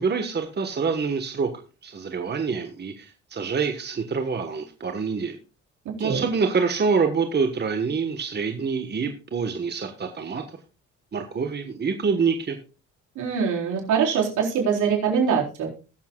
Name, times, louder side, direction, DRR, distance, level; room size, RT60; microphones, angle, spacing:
voice 1, 0.0-1.5 1.8-5.4 6.0-10.4 11.1-12.6, right 5 dB, 35° right, 5 dB, 1.3 m, -26 dB
voice 2, 5.9-6.2 13.2-15.7, right 6 dB, 75° right, -2 dB, 4.2 m, -23 dB
21.0 x 7.1 x 2.3 m, 0.33 s
cardioid pair, 90°, 30 cm